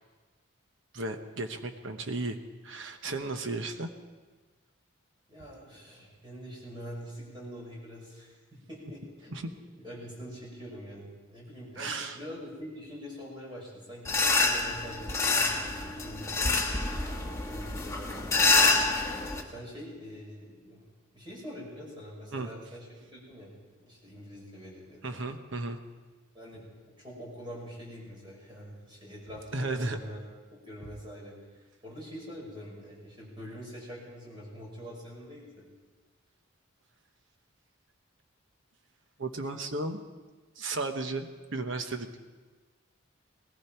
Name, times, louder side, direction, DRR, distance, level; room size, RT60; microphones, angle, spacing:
voice 1, 0.9-2.4 2.6-3.9 5.5-5.6 9.3-9.5 11.8-12.2 22.3-22.5 25.0-25.8 29.5-30.0 39.2-40.0 40.6-42.2, right 2 dB, 65° right, 7 dB, 1.1 m, -34 dB
voice 2, 5.3-8.4 8.7-9.5 9.8-16.8 17.5-18.8 19.5-20.8 21.1-23.5 23.8-25.2 26.3-30.2 30.5-31.3 31.8-35.6, equal, 25° right, -4 dB, 5.7 m, -44 dB
sound 1, 14.0-19.4, left 3 dB, 15° left, 1.3 m, -27 dB
19.0 x 15.0 x 4.5 m, 1.3 s
head